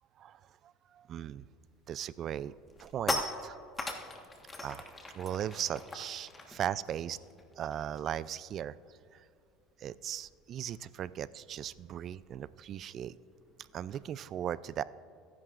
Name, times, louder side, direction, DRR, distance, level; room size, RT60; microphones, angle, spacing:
voice 1, 0.2-1.5 1.9-2.5 2.8-3.6 4.6-4.9 5.1-7.2 7.6-8.8 9.1-9.2 9.8-13.2 13.7-14.8, right 10 dB, 45° right, 18 dB, 0.3 m, -38 dB
sound 1, 1.7-1.9 2.3-8.3 8.5-8.8 9.0-14.1, left 2 dB, 15° left, 1.3 m, -42 dB
21.0 x 10.5 x 2.5 m, 2.5 s
supercardioid pair, 115°, 0 cm